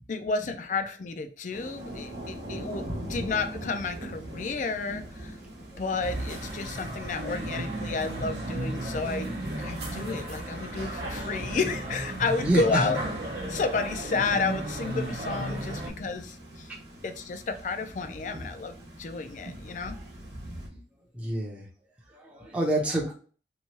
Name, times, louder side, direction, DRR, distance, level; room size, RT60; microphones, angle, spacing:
voice 1, 0.1-5.4 5.8-13.0 13.5-16.7 17.0-20.0, left 4 dB, 45° left, 7 dB, 0.4 m, -31 dB
Thunder / Rain, 1.5-20.7, right 1 dB, 80° right, 1.0 m, -42 dB
sound 1, 6.0-15.9, right 1 dB, 60° right, 0.8 m, -34 dB
voice 2, 12.4-12.9 19.4-19.6 21.1-21.7 22.1-23.1, right 1 dB, 5° right, -4 dB, 0.6 m, -28 dB
3.0 x 2.2 x 2.8 m, 0.41 s
head